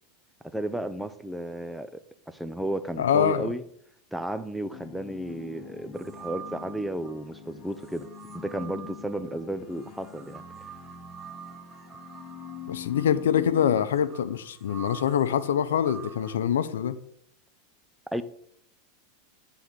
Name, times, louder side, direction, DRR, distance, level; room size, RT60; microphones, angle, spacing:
voice 1, 0.4-3.6 4.1-10.6 18.1-18.2, right 1 dB, 5° right, 12 dB, 0.6 m, -33 dB
voice 2, 3.0-3.5 12.7-17.0, left 9 dB, 85° left, 14 dB, 0.6 m, -25 dB
sound 1, 4.7-13.9, left 9 dB, 40° left, 1.4 m, -45 dB
sound 2, 5.9-7.2 7.8-16.4, right 8 dB, 25° right, 1.1 m, -46 dB
9.2 x 3.9 x 6.7 m, 0.68 s
hypercardioid pair, 115°, 0 cm